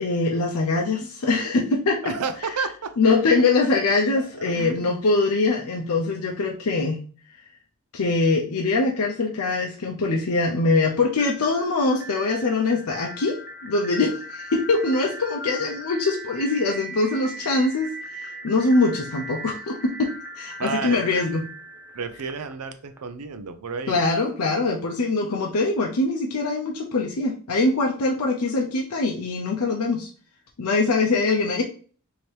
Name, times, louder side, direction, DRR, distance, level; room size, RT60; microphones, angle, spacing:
voice 1, 0.0-2.0 3.0-7.0 7.9-20.1 20.4-21.5 23.9-30.1 30.6-31.6, left 3 dB, 80° left, 0 dB, 0.6 m, -23 dB
voice 2, 2.0-2.9 4.2-4.9 20.6-21.2 21.9-24.0, right 5 dB, 85° right, 9 dB, 0.5 m, -31 dB
sound 1, 11.1-23.0, right 1 dB, 10° right, 0.4 m, -39 dB
3.2 x 2.8 x 4.3 m, 0.42 s
head